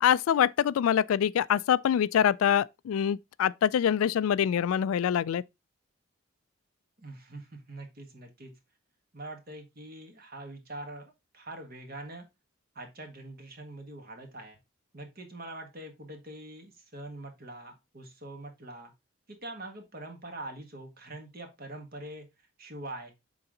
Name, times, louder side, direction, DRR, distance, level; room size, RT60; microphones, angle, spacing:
voice 1, 0.0-5.4, left 9 dB, 85° left, 0.3 m, -25 dB
voice 2, 7.0-8.5 9.1-11.0 11.3-12.3 12.7-14.6 14.9-18.9 19.3-22.3 22.6-23.1, right 1 dB, 45° right, 1.6 m, -43 dB
6.9 x 3.9 x 3.8 m
head